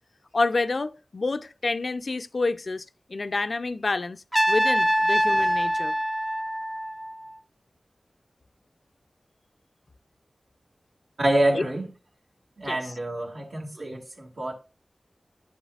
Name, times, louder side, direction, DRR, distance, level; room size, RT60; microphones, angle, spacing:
voice 1, 0.3-5.9 11.5-11.6 12.7-12.8, left 3 dB, 65° left, 0.4 m, -28 dB
Trumpet, 4.3-7.3, equal, 15° right, 0.6 m, -24 dB
voice 2, 11.2-11.9 12.6-14.5, right 1 dB, 75° right, 1.8 m, -26 dB
10.0 x 7.3 x 2.4 m
wide cardioid pair, 50°, 0 cm